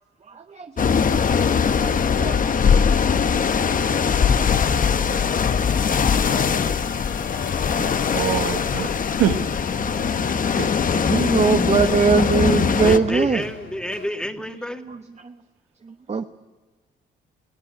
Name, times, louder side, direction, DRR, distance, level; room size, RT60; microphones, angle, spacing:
voice 1, 0.6-1.0 1.3-1.4 1.8-1.9 2.2-2.4 11.0-13.4 16.1-16.2, right 5 dB, 35° right, 7 dB, 1.1 m, -20 dB
sound 1, 0.8-13.0, left 6 dB, 45° left, 1.1 m, -21 dB
sound 2, 4.9-14.1, left 5 dB, 70° left, 5.0 m, -39 dB
voice 2, 7.8-9.4 10.3-10.8, right 11 dB, 90° right, 7 dB, 1.5 m, -26 dB
voice 3, 12.8-14.8, equal, 5° left, 5 dB, 2.2 m, -29 dB
22.0 x 17.0 x 9.8 m, 1.3 s
cardioid pair, 90°, 20 cm